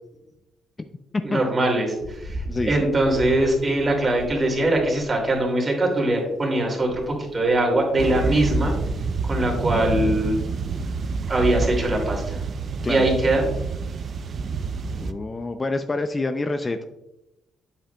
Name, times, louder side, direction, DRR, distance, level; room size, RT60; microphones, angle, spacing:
voice 1, 1.2-8.8 9.2-10.4 11.3-12.4 12.9-13.4, right 1 dB, 30° right, 0 dB, 2.4 m, -22 dB
Rain, 2.0-5.5 6.0-6.1 6.6-13.2, right 1 dB, 70° right, 1.2 m, -35 dB
voice 2, 2.4-2.9 12.8-13.1 14.9-16.8, left 2 dB, 25° left, 8 dB, 0.4 m, -27 dB
sound 1, 8.0-15.1, right 5 dB, 50° right, 0.5 m, -28 dB
8.7 x 7.4 x 2.2 m, 0.91 s
cardioid pair, 90°, 0 cm